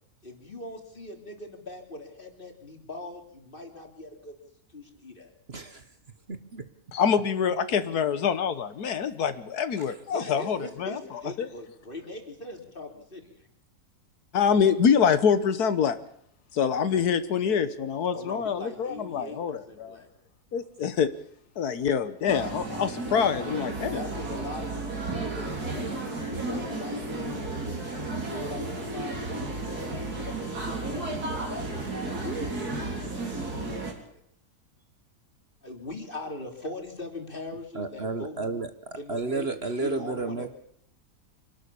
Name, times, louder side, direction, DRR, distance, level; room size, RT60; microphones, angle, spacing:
voice 1, 0.2-4.4 4.7-5.3 10.1-13.5 18.1-20.1 23.8-27.9 28.2-29.8 30.2-31.7 32.0-32.7 33.0-34.2 35.6-38.4 38.9-40.5, left 1 dB, 35° left, 3 dB, 3.6 m, -41 dB
voice 2, 5.5-5.9 6.3-6.6 9.8-9.9 37.7-38.7 39.1-40.5, right 3 dB, 45° right, 9 dB, 1.4 m, -31 dB
voice 3, 6.9-10.9 11.4-11.5 14.3-16.0 16.5-20.0 20.5-21.1 21.6-24.0, left 7 dB, 80° left, 12 dB, 1.6 m, -25 dB
sound 1, 22.3-33.9, right 2 dB, 85° right, 4.1 m, -33 dB
25.5 x 12.0 x 8.5 m, 0.71 s
omnidirectional pair, 1.6 m